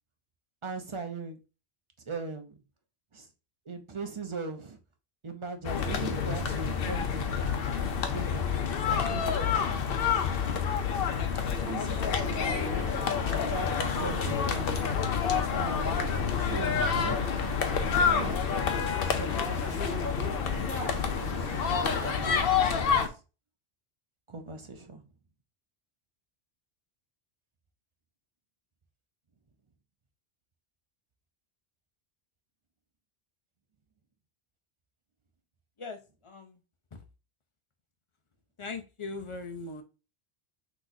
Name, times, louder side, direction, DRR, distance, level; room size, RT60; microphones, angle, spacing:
voice 1, 0.6-1.4 2.1-2.6 3.1-3.3 3.7-4.8 5.2-7.3 8.1-8.5 8.9-10.1 11.6-12.4 13.2-14.8 15.6-16.0 16.3-17.5 17.9-18.4 19.0-20.3 21.0-23.2 24.3-25.0, right 4 dB, 35° right, 6 dB, 0.7 m, -40 dB
sound 1, 5.6-23.1, left 6 dB, 65° left, 0.8 m, -28 dB
sound 2, 12.2-22.4, left 1 dB, 10° left, 1.2 m, -39 dB
voice 2, 35.8-36.6 36.9-37.0 38.6-39.8, left 3 dB, 35° left, 6 dB, 0.6 m, -40 dB
6.0 x 3.1 x 2.6 m, 0.31 s
omnidirectional pair, 1.1 m